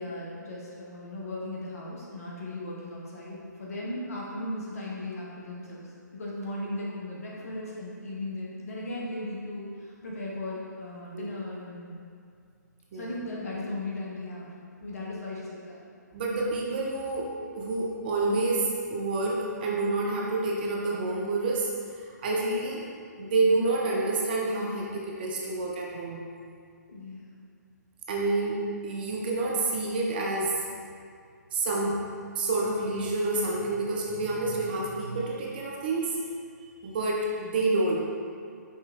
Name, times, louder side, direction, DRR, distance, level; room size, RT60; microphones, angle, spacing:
voice 1, 0.0-5.9 6.1-12.0 12.9-14.5 14.8-15.8 26.9-27.3, left 1 dB, 55° left, -5 dB, 1.0 m, -37 dB
voice 2, 16.1-17.3 17.6-21.7 22.0-22.8 23.2-26.2 28.1-30.5 31.5-32.0 32.4-36.2 36.6-38.0, right 2 dB, 30° right, -3 dB, 0.5 m, -28 dB
5.4 x 3.1 x 2.4 m, 2.3 s
figure-of-eight pair, 135°, 10 cm